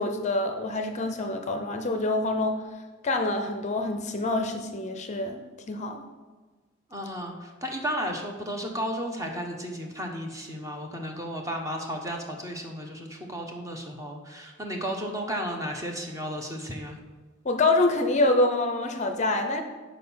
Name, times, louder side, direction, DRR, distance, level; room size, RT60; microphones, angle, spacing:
voice 1, 0.0-2.6 3.0-5.4 5.7-6.0 17.4-19.6, left 2 dB, 35° left, 5 dB, 0.5 m, -26 dB
voice 2, 6.9-17.0, equal, 15° right, 2 dB, 0.9 m, -33 dB
6.5 x 5.0 x 5.5 m, 1.3 s
head